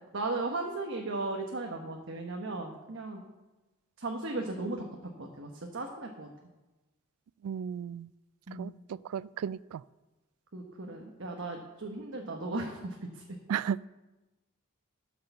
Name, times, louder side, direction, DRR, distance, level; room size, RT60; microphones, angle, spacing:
voice 1, 0.1-3.2 4.0-4.8 5.2-6.3 8.5-8.7 10.5-13.2, right 2 dB, 60° right, 2 dB, 1.2 m, -36 dB
voice 2, 7.4-8.1 8.6-9.8 13.5-13.9, right 8 dB, 85° right, 21 dB, 0.3 m, -34 dB
12.5 x 6.7 x 6.8 m, 1.1 s
head